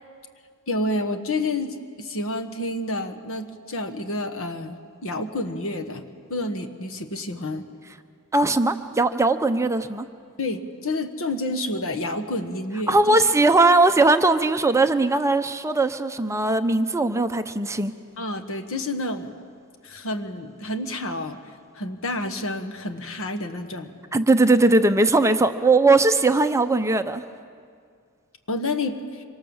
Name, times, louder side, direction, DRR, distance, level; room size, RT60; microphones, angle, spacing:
voice 1, 0.7-7.6 10.4-13.2 18.2-19.3 19.8-21.4 21.7-23.9 28.5-29.2, left 2 dB, 65° left, 6 dB, 1.6 m, -29 dB
voice 2, 8.3-10.1 12.9-17.9 24.1-27.2, right 2 dB, 15° right, 9 dB, 0.7 m, -19 dB
25.5 x 24.5 x 7.3 m, 2.1 s
head